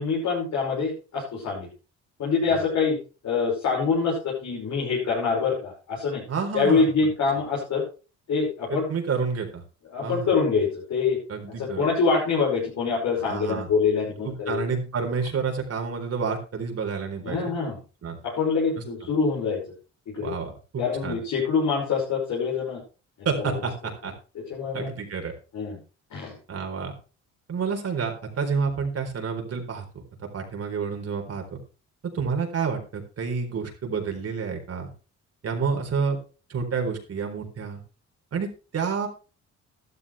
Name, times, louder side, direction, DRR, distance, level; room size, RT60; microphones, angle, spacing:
voice 1, 0.0-1.7 2.2-3.0 3.2-6.2 6.5-7.8 8.3-8.9 9.9-11.2 11.6-14.6 17.2-17.8 18.2-19.6 20.1-20.3 20.8-22.8 24.5-24.9 25.5-25.8 26.1-26.4, left 5 dB, 65° left, -4 dB, 5.5 m, -25 dB
voice 2, 6.3-6.9 8.7-9.6 10.0-10.3 11.3-11.9 13.3-13.7 14.2-17.5 18.0-18.2 20.2-21.2 23.2-24.1 24.7-25.3 26.5-26.9 27.5-29.8 30.3-31.6 32.0-34.9 35.4-36.2 36.5-37.8 38.3-38.5 38.7-39.1, right 5 dB, 55° right, 3 dB, 4.1 m, -29 dB
12.5 x 12.5 x 3.3 m, 0.33 s
cardioid pair, 90°, 30 cm